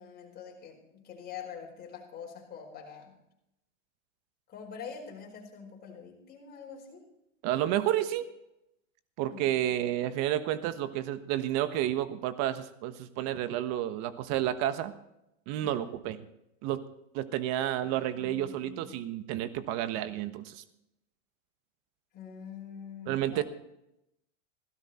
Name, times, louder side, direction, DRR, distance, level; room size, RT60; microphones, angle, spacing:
voice 1, 0.0-3.2 4.5-7.0 9.3-10.0 15.6-15.9 17.8-18.9 22.1-23.4, left 7 dB, 25° left, 0 dB, 4.8 m, -45 dB
voice 2, 7.4-8.3 9.2-14.9 15.5-16.2 16.6-16.8 17.1-20.6 23.1-23.4, right 12 dB, 45° right, 11 dB, 1.2 m, -30 dB
16.5 x 13.0 x 4.3 m, 0.84 s
supercardioid pair, 135°, 39 cm